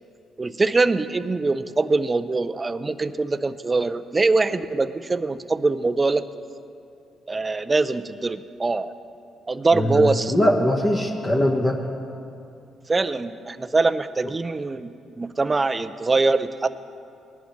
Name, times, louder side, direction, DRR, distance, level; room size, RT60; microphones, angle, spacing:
voice 1, 0.4-6.2 7.3-8.9 9.5-10.3 12.9-16.7, right 3 dB, 25° right, 12 dB, 0.5 m, -23 dB
voice 2, 9.7-11.8, left 1 dB, 25° left, 1 dB, 1.2 m, -21 dB
20.0 x 11.0 x 3.2 m, 2.6 s
cardioid pair, 90°, 0 cm